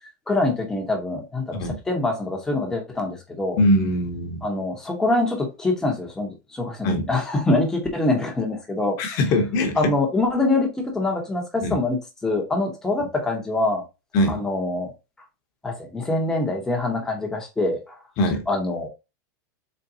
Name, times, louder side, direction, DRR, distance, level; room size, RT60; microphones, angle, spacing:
voice 1, 0.3-3.6 4.4-9.2 9.8-13.8 14.3-14.9 15.6-18.0 18.5-18.9, left 2 dB, 5° left, 0.8 m, -24 dB
voice 2, 3.6-4.5 6.8-7.1 9.0-9.9 11.6-11.8 14.1-14.4 18.2-18.4, left 1 dB, 35° left, 0.9 m, -22 dB
4.1 x 3.2 x 2.6 m
supercardioid pair, 170°, 10 cm